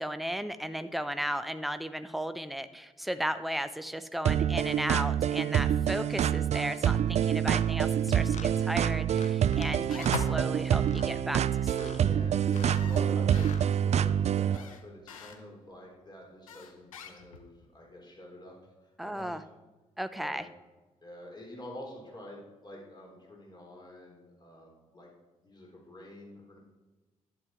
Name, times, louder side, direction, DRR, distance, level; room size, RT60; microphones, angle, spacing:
voice 1, 0.0-12.0 19.0-19.4 20.0-20.5, equal, ahead, 12 dB, 0.7 m, -35 dB
sound 1, 4.2-14.6, right 9 dB, 40° right, 0.4 m, -27 dB
sound 2, 7.6-7.7 8.3-8.5 9.1-9.7 9.9-10.3 10.8-11.1 11.7-12.0 12.4-12.9 13.3-13.7, left 5 dB, 45° left, 1.1 m, -46 dB
sound 3, 8.1-8.5 9.5-10.5 12.5-13.6 14.5-15.4 16.5-17.6, left 4 dB, 85° left, 0.7 m, -41 dB
voice 2, 11.9-18.5 19.0-19.4 20.2-20.4 21.0-25.1 25.4-26.6, left 1 dB, 25° left, -1 dB, 3.7 m, -47 dB
11.0 x 9.2 x 4.4 m, 1.2 s
figure-of-eight pair, 40°, 17 cm